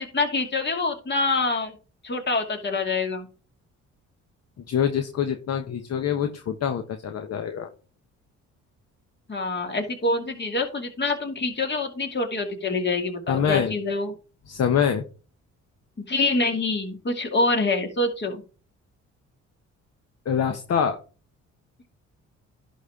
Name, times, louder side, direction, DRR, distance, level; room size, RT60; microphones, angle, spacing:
voice 1, 0.0-1.8 2.0-3.3 9.3-14.1 16.1-18.4, left 3 dB, 35° left, 4 dB, 2.5 m, -26 dB
voice 2, 4.7-7.7 13.3-13.7 14.5-15.0 20.2-21.0, left 8 dB, 55° left, 6 dB, 1.1 m, -25 dB
11.0 x 4.3 x 4.9 m, 0.35 s
cardioid pair, 90°, 30 cm